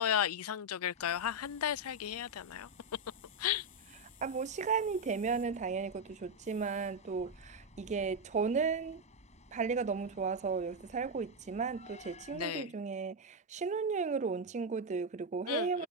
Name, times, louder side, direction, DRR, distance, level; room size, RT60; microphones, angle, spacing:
voice 1, 0.0-2.7 3.4-3.6 12.3-12.7 15.5-15.9, left 10 dB, 80° left, 0.5 m, -34 dB
sound 1, 0.9-12.5, left 2 dB, 30° left, 7.3 m, -58 dB
sound 2, 1.0-7.7, left 10 dB, 60° left, 4.4 m, -62 dB
voice 2, 4.2-9.0 9.5-15.9, right 5 dB, 35° right, 0.4 m, -34 dB
head